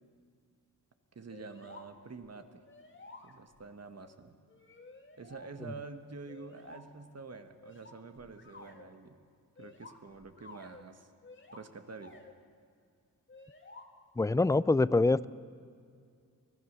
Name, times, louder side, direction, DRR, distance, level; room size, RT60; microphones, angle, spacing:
voice 1, 1.1-2.6 3.2-4.4 5.2-9.2 9.6-11.1 11.5-12.2, right 4 dB, 45° right, 8 dB, 1.6 m, -47 dB
sound 1, 1.3-1.9 2.2-2.3 2.6-3.6 4.5-5.5 6.3-6.9 7.6-8.8 9.6-10.9 11.2-11.6 12.0-12.3 13.3-13.8, left 3 dB, 35° left, 2.2 m, -53 dB
voice 2, 14.2-15.3, left 3 dB, 10° left, 18 dB, 0.4 m, -25 dB
24.5 x 16.0 x 6.8 m, 2.2 s
cardioid pair, 70°, 36 cm